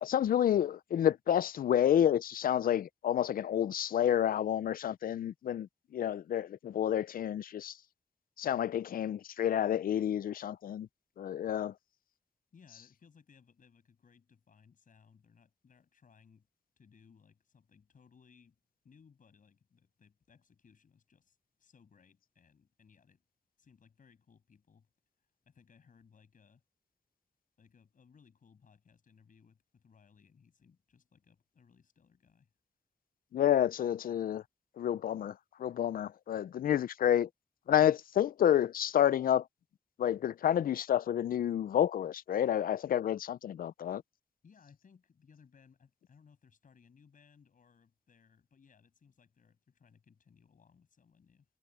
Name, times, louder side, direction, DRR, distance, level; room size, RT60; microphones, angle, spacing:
voice 1, 0.0-5.7 5.9-7.7 8.4-10.9 11.2-11.7 33.3-34.4 34.8-35.3 35.6-37.3 37.7-39.4 40.0-44.0, left 10 dB, 85° left, 0.4 m, -29 dB
voice 2, 12.5-16.5 16.8-18.6 18.8-23.2 23.6-24.9 25.2-26.6 27.6-32.5 44.4-51.5, left 6 dB, 70° left, 7.3 m, -63 dB
wide cardioid pair, 130°, 14 cm